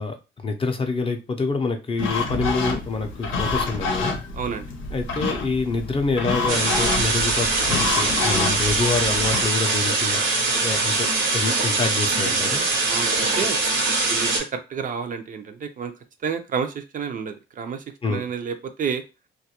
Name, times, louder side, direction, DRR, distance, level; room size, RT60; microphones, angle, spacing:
voice 1, 0.0-4.2 4.9-12.7 18.0-18.2, left 3 dB, 30° left, 5 dB, 0.4 m, -27 dB
sound 1, 2.0-9.5, left 3 dB, 80° left, 0.6 m, -27 dB
voice 2, 4.3-4.7 12.2-12.6 12.9-13.6 14.1-15.9 16.2-19.0, right 6 dB, 45° right, 8 dB, 0.4 m, -30 dB
sound 2, 6.5-14.4, right 3 dB, 90° right, 0.8 m, -22 dB
2.3 x 2.1 x 2.8 m, 0.29 s
cardioid pair, 90°, 20 cm